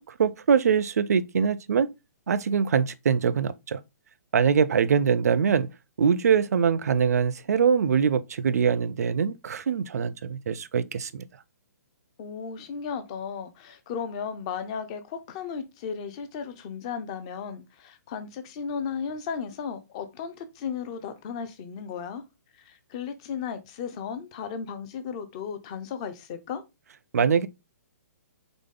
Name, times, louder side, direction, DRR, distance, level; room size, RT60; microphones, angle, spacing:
voice 1, 0.0-1.9 2.3-3.8 4.3-5.7 6.0-11.2 27.1-27.5, right 6 dB, 70° right, 0.5 m, -23 dB
voice 2, 12.2-22.2 22.6-26.6, left 6 dB, 20° left, 0.5 m, -35 dB
3.9 x 3.6 x 3.7 m
hypercardioid pair, 175°, 9 cm